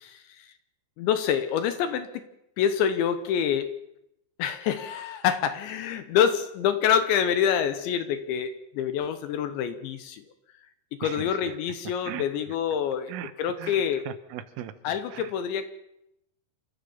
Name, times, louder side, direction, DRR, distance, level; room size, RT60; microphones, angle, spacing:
voice 1, 0.1-0.5 1.0-2.3 2.6-3.7 4.4-10.2 11.0-13.1 13.4-14.1 14.8-15.7, left 8 dB, 75° left, 10 dB, 3.0 m, -26 dB
voice 2, 11.0-11.6 12.1-12.2 13.1-13.3 13.6-14.7 15.1-15.3, right 12 dB, 80° right, 12 dB, 3.6 m, -38 dB
27.5 x 13.5 x 7.2 m, 0.84 s
omnidirectional pair, 6.0 m